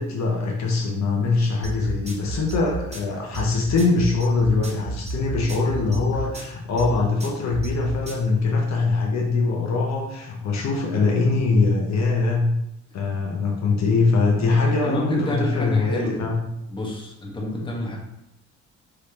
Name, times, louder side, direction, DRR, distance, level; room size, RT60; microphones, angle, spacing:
voice 1, 0.0-12.5 12.9-16.4, left 3 dB, 65° left, -1 dB, 0.9 m, -22 dB
sound 1, 1.6-8.3, right 2 dB, 20° right, 1.1 m, -31 dB
voice 2, 14.7-16.2 16.7-18.0, left 1 dB, 15° left, -3 dB, 1.3 m, -28 dB
5.0 x 3.2 x 2.9 m, 0.83 s
cardioid pair, 90°, 30 cm